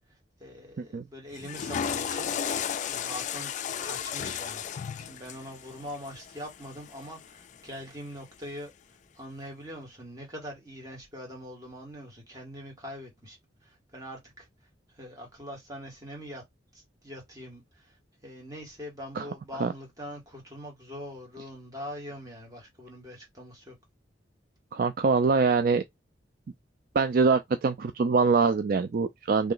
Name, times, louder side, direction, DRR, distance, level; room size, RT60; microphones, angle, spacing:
voice 1, 0.4-3.5 3.8-8.7 9.1-14.5 14.9-16.4 16.7-18.0 18.2-23.8, equal, 20° right, 1.9 m, -43 dB
Water / Toilet flush, 1.3-7.6, left 8 dB, 40° left, 0.3 m, -34 dB
voice 2, 24.7-25.8 26.9-29.5, right 4 dB, 50° right, 0.4 m, -24 dB
3.3 x 2.9 x 3.9 m
head